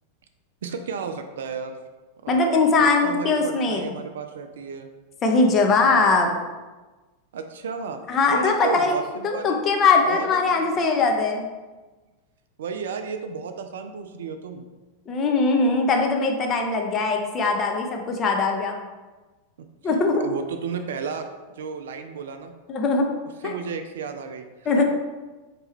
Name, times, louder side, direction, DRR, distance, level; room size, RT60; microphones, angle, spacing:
voice 1, 0.6-1.8 2.2-4.9 5.8-6.1 7.3-8.0 8.3-9.6 10.1-10.9 12.6-14.7 20.1-21.3 21.5-22.5 23.4-24.4 24.8-24.9, right 5 dB, 60° right, 7 dB, 0.3 m, -33 dB
voice 2, 2.3-3.9 5.2-6.3 8.1-9.0 9.2-11.5 15.1-18.8 19.8-20.3 22.7-23.1 23.4-23.5 24.7-24.8, left 3 dB, 30° left, 2 dB, 0.6 m, -21 dB
4.4 x 2.9 x 3.4 m, 1.2 s
figure-of-eight pair, 90°, 0 cm